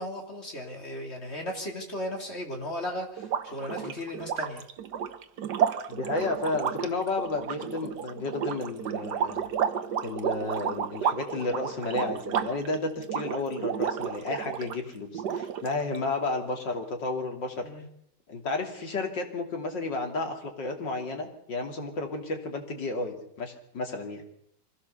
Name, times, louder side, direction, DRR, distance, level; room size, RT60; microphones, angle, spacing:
voice 1, 0.0-4.7 17.6-17.8, left 1 dB, 35° left, 2 dB, 3.8 m, -36 dB
sound 1, 3.2-14.8 15.1-16.0, right 8 dB, 70° right, 1.6 m, -31 dB
voice 2, 5.9-9.4 10.0-17.7 18.3-24.2, left 3 dB, 80° left, 3 dB, 3.5 m, -32 dB
24.5 x 16.0 x 6.9 m, 0.72 s
omnidirectional pair, 1.9 m